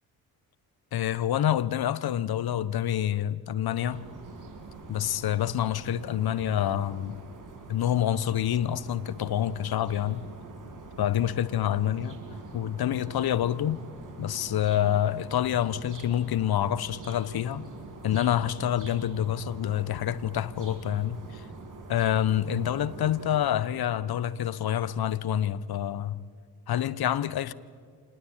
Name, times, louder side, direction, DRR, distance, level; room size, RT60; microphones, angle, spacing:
voice 1, 0.9-4.0 4.9-7.2 7.7-10.3 11.0-12.2 12.5-13.8 14.2-17.7 18.0-21.5 21.9-26.2 26.7-27.5, left 11 dB, 55° left, 1.0 m, -27 dB
sound 1, 3.8-23.4, right 4 dB, 45° right, 5.8 m, -45 dB
26.5 x 19.5 x 8.9 m
supercardioid pair, 55°, 45 cm